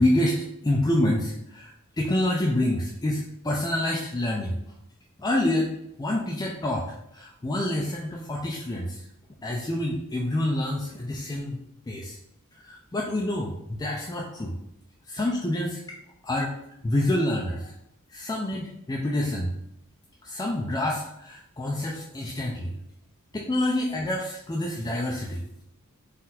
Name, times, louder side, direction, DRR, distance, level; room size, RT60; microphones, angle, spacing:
voice 1, 0.0-4.6 5.2-5.7 6.0-6.9 7.1-9.0 9.4-11.6 11.9-12.2 12.5-14.6 15.1-15.7 16.2-16.5 16.8-17.7 18.1-19.5 20.2-22.7 23.3-25.4, left 1 dB, 15° left, -2 dB, 0.4 m, -27 dB
3.9 x 2.5 x 4.1 m, 0.77 s
head